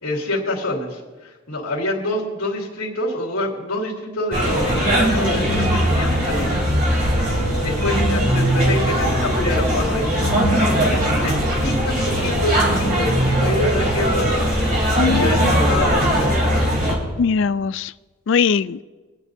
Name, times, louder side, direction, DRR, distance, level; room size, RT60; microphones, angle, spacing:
voice 1, 0.0-6.7 7.2-7.3 7.6-10.5 10.9-14.3 15.1-16.8, left 1 dB, 80° left, -4 dB, 2.7 m, -27 dB
sound 1, 4.3-16.9, equal, 40° right, 3.5 m, -19 dB
voice 2, 15.0-15.5 17.2-17.9 18.3-18.8, left 5 dB, 60° left, 15 dB, 0.4 m, -20 dB
25.0 x 9.8 x 2.7 m, 1.3 s
head